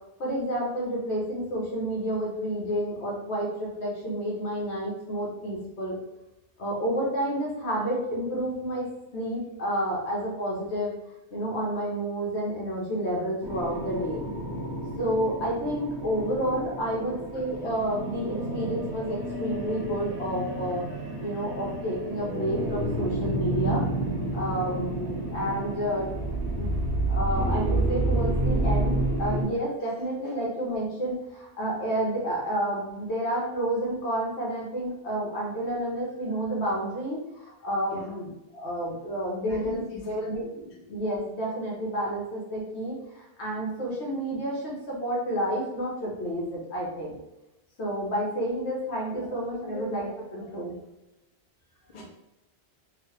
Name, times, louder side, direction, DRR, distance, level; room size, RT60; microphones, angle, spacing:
voice 1, 0.2-6.0 6.6-10.9 11.3-14.2 15.0-20.8 21.2-23.8 24.3-26.1 26.5-26.7 27.1-40.4 40.9-47.1 47.8-50.8, right 1 dB, 70° left, -3 dB, 1.2 m, -30 dB
sound 1, 13.4-29.4, right 2 dB, 30° right, 0.6 m, -30 dB
voice 2, 39.5-40.8 49.1-50.1 51.8-52.0, left 1 dB, 50° left, -2 dB, 0.7 m, -41 dB
3.1 x 2.3 x 3.1 m, 0.94 s
omnidirectional pair, 1.2 m